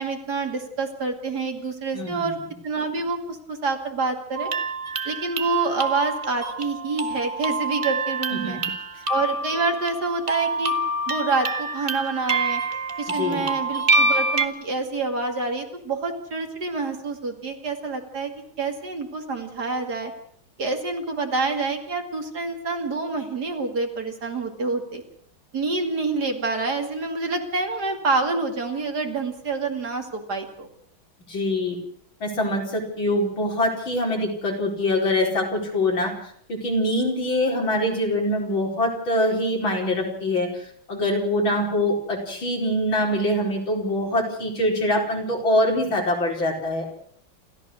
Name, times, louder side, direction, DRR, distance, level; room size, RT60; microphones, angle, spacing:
voice 1, 0.0-2.4 2.6-4.5 5.0-8.6 9.1-10.7 11.1-12.6 13.0-18.3 18.6-20.1 20.6-25.0 25.5-30.7, right 3 dB, 50° right, 4 dB, 2.9 m, -27 dB
voice 2, 1.9-2.3 8.3-8.6 13.1-13.5 31.3-31.8 32.2-46.9, left 1 dB, 70° left, 0 dB, 5.3 m, -24 dB
sound 1, 4.3-14.5, right 2 dB, 30° right, 1.3 m, -26 dB
28.5 x 14.0 x 6.4 m, 0.62 s
omnidirectional pair, 2.2 m